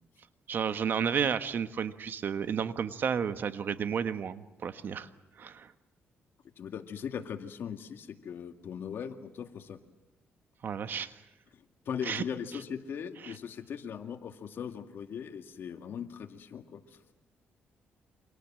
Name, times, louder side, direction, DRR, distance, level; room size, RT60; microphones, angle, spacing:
voice 1, 0.5-5.1 5.4-5.7 10.6-11.2 12.1-12.2, right 7 dB, 55° right, 10 dB, 1.4 m, -32 dB
voice 2, 6.6-9.8 11.5-17.1, left 7 dB, 65° left, 6 dB, 2.2 m, -39 dB
29.0 x 25.0 x 7.6 m, 1.0 s
cardioid pair, 115°, 4 cm